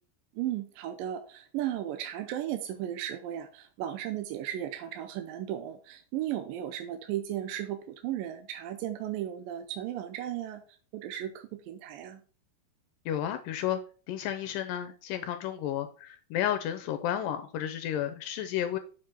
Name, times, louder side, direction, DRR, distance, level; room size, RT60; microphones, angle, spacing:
voice 1, 0.4-10.6 10.9-12.2, right 11 dB, 80° right, 6 dB, 2.3 m, -35 dB
voice 2, 13.1-13.8 14.1-18.8, left 11 dB, 80° left, 8 dB, 2.1 m, -32 dB
7.1 x 4.9 x 4.3 m, 0.40 s
omnidirectional pair, 4.2 m